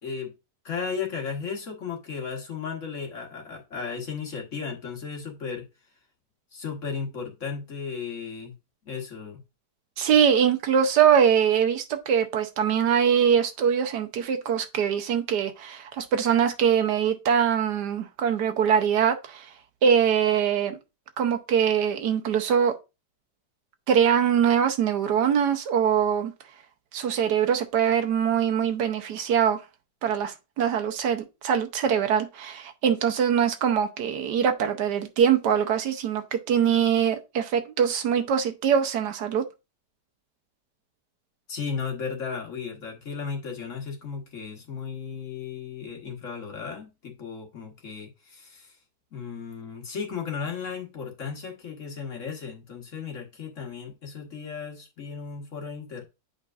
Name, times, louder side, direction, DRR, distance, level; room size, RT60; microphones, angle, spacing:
voice 1, 0.0-0.3 0.6-5.6 6.5-8.5 8.9-9.4 41.5-48.8 49.1-56.0, left 6 dB, 50° left, 1.6 m, -35 dB
voice 2, 10.0-19.5 19.8-20.8 21.2-22.7 23.9-26.3 26.9-29.6 30.0-39.4, right 8 dB, 75° right, 1.4 m, -23 dB
8.2 x 5.1 x 2.4 m
omnidirectional pair, 1.8 m